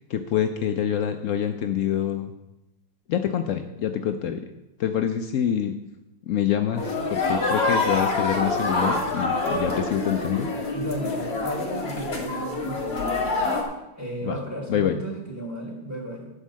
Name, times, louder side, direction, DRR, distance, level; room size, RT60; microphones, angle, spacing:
voice 1, 0.0-2.3 3.1-4.5 4.8-5.8 6.2-10.5 14.2-14.4 14.7-15.0, left 9 dB, 80° left, 7 dB, 0.7 m, -26 dB
sound 1, 6.8-13.6, left 3 dB, 50° left, 2.5 m, -26 dB
voice 2, 10.7-13.2 14.0-16.3, equal, 10° right, -3 dB, 3.7 m, -34 dB
11.5 x 5.5 x 7.4 m, 0.96 s
omnidirectional pair, 2.1 m